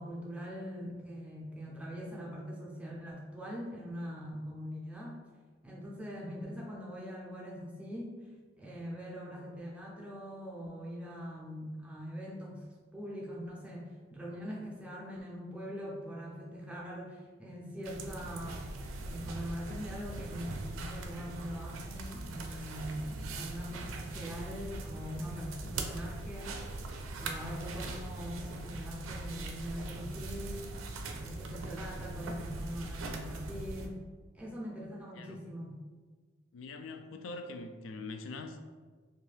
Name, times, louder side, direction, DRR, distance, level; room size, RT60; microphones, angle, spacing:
voice 1, 0.0-5.2 5.6-12.7 12.9-26.8 27.2-30.7 31.1-34.0 34.3-35.8, equal, 5° right, -4 dB, 0.5 m, -42 dB
sound 1, 17.8-33.9, right 2 dB, 90° right, 0.4 m, -41 dB
voice 2, 35.1-35.5 36.5-38.6, left 3 dB, 75° left, 6 dB, 0.3 m, -44 dB
2.6 x 2.3 x 3.2 m, 1.5 s
head